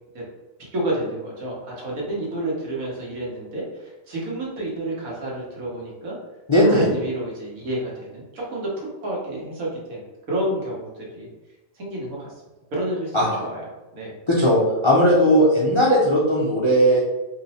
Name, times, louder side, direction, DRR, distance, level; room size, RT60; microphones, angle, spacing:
voice 1, 0.6-6.2 6.6-8.7 9.0-11.3 11.8-12.3 12.7-13.6 13.9-14.1, right 1 dB, 90° right, -4 dB, 1.5 m, -29 dB
voice 2, 6.5-6.9 13.1-13.5 14.3-17.0, equal, 35° left, -5 dB, 0.5 m, -17 dB
3.2 x 2.0 x 4.1 m, 1.1 s
omnidirectional pair, 1.4 m